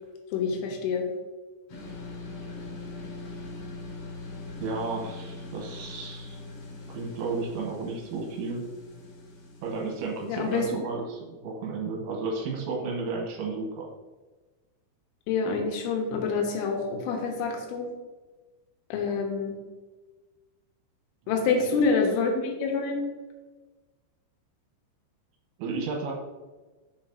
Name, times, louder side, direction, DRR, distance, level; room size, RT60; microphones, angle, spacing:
voice 1, 0.3-1.1 10.3-10.7 15.3-17.9 18.9-19.6 21.3-23.0, left 4 dB, 85° left, 2 dB, 3.5 m, -27 dB
sound 1, 1.7-10.7, left 3 dB, 65° left, 3.5 m, -42 dB
voice 2, 4.6-6.4 6.9-8.6 9.6-13.9 21.3-21.5 25.6-26.1, right 4 dB, 75° right, -1 dB, 3.2 m, -33 dB
7.4 x 5.8 x 2.7 m, 1.2 s
omnidirectional pair, 5.5 m